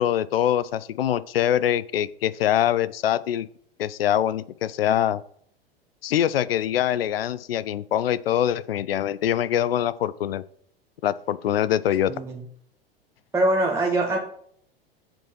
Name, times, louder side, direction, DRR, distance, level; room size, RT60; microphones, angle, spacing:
voice 1, 0.0-3.5 3.8-5.2 6.0-10.4 11.0-12.1, left 11 dB, 70° left, 17 dB, 0.5 m, -24 dB
voice 2, 12.1-12.4 13.3-14.2, right 2 dB, 10° right, -1 dB, 1.1 m, -23 dB
7.4 x 5.3 x 6.1 m, 0.64 s
figure-of-eight pair, 90°, 31 cm